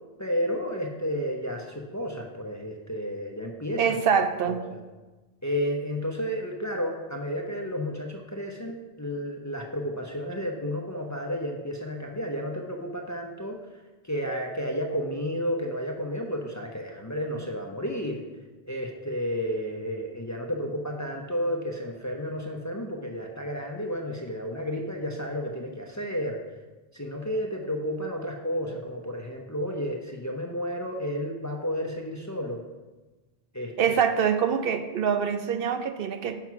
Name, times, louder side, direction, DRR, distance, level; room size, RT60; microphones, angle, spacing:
voice 1, 0.2-4.0 4.4-4.8 5.4-13.6 14.0-18.2 18.7-26.4 26.9-32.6 33.5-33.7, equal, 20° left, 1 dB, 0.6 m, -32 dB
voice 2, 3.8-4.6 33.8-36.4, right 7 dB, 70° right, 8 dB, 0.8 m, -25 dB
5.9 x 5.9 x 5.9 m, 1.2 s
omnidirectional pair, 1.0 m